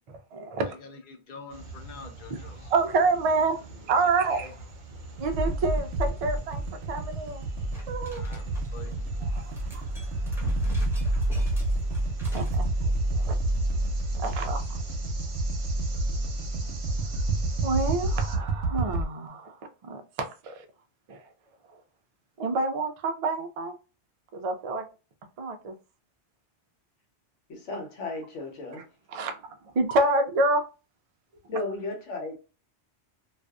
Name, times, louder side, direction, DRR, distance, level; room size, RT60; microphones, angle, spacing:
voice 1, 0.1-0.7 2.7-4.5 5.2-6.6 6.9-7.5 7.9-8.2 9.3-9.4 9.7-9.8 10.5-10.6 11.1-11.3 12.3-13.3 14.2-14.8 17.6-20.7 21.1-21.2 22.4-23.8 24.3-24.9 25.4-25.7 29.1-29.4 29.7-30.6, right 3 dB, 65° right, 0.3 m, -28 dB
voice 2, 0.6-2.8 4.3-4.6 8.1-9.5, left 4 dB, 55° left, 0.6 m, -47 dB
sound 1, 1.5-18.4, right 3 dB, 50° right, 0.7 m, -44 dB
sound 2, 5.2-19.0, right 2 dB, 85° right, 0.9 m, -29 dB
sound 3, 7.7-8.9 9.3-12.6, equal, 5° right, 0.6 m, -48 dB
voice 3, 27.5-28.9 31.5-32.3, left 2 dB, 90° left, 1.2 m, -34 dB
2.5 x 2.3 x 2.3 m
omnidirectional pair, 1.2 m